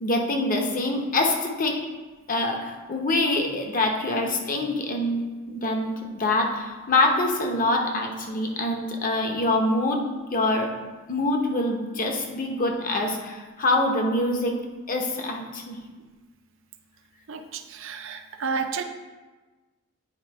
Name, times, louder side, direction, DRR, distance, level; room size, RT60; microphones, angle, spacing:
voice 1, 0.0-1.8 2.3-10.0 10.3-10.7 11.1-14.6 14.9-15.8, left 2 dB, 40° left, 2 dB, 0.9 m, -25 dB
voice 2, 17.3-18.8, right 5 dB, 65° right, 7 dB, 0.5 m, -31 dB
9.0 x 3.6 x 4.7 m, 1.2 s
head